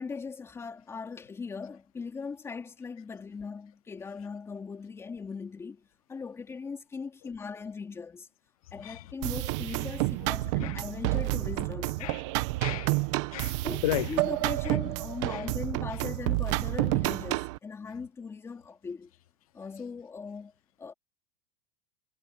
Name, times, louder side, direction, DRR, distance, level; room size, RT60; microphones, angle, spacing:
voice 1, 0.0-8.3 8.7-12.1 13.6-19.1 19.5-20.5 20.8-20.9, left 5 dB, 15° left, 3.2 m, -39 dB
sound 1, 9.2-17.6, right 21 dB, 55° right, 1.3 m, -29 dB
voice 2, 12.6-14.2 14.6-14.8 15.3-15.5, left 15 dB, 85° left, 1.0 m, -35 dB
supercardioid pair, 145°, 18 cm